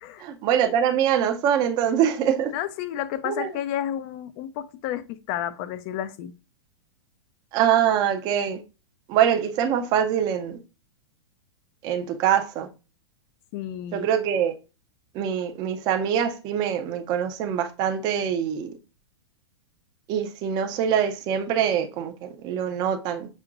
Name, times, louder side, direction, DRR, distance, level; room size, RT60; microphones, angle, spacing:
voice 1, 0.2-2.5 3.3-3.5 7.5-8.6 9.1-10.6 11.8-12.7 13.9-14.5 15.1-18.7 20.1-23.3, right 9 dB, 30° right, 0.6 m, -24 dB
voice 2, 2.5-6.3 13.5-14.1, left 11 dB, 35° left, 0.5 m, -31 dB
6.1 x 2.8 x 2.5 m
hypercardioid pair, 150°, 14 cm